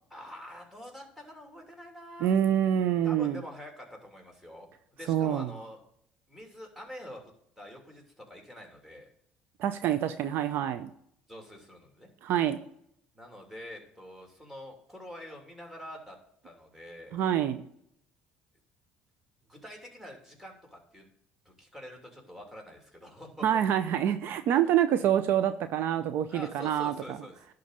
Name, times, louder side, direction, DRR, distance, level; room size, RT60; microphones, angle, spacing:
voice 1, 0.1-2.3 3.0-5.8 6.3-9.1 11.3-12.1 13.1-16.2 16.4-17.3 19.5-21.1 21.4-23.4 26.3-27.5, equal, 10° right, 1 dB, 2.9 m, -46 dB
voice 2, 2.2-3.4 5.1-5.5 9.6-10.9 12.2-12.6 17.1-17.7 23.4-27.2, right 10 dB, 65° right, 11 dB, 0.5 m, -26 dB
11.0 x 3.9 x 6.6 m, 0.70 s
supercardioid pair, 80°, 4 cm